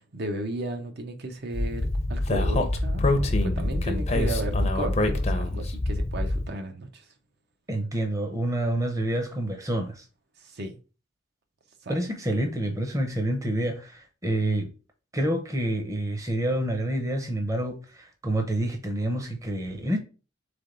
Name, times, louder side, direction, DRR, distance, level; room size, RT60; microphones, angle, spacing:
voice 1, 0.0-7.0 10.5-10.8 11.8-11.9, right 2 dB, 55° right, 0.6 m, -34 dB
Speech, 1.5-6.5, left 2 dB, 35° left, 0.5 m, -25 dB
voice 2, 7.7-10.0 11.9-14.7 15.1-20.0, right 1 dB, 15° right, 0.7 m, -28 dB
3.7 x 3.4 x 3.8 m
head